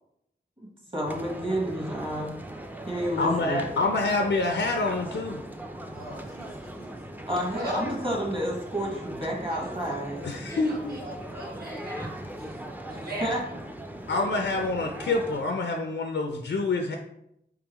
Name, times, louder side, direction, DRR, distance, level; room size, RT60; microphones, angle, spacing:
voice 1, 0.9-2.3 2.9-3.6 7.2-10.2 12.9-13.4, equal, 30° right, -2 dB, 1.3 m, -30 dB
sound 1, 1.1-15.4, right 1 dB, 10° right, 0.4 m, -39 dB
voice 2, 3.2-5.4 10.2-11.0 14.1-17.0, left 3 dB, 90° left, 3 dB, 0.4 m, -27 dB
voice 3, 5.9-7.2 7.5-7.8 9.5-9.7 10.5-13.3, equal, 55° right, -3 dB, 1.0 m, -39 dB
3.7 x 3.4 x 2.9 m, 0.77 s
wide cardioid pair, 60°, 19 cm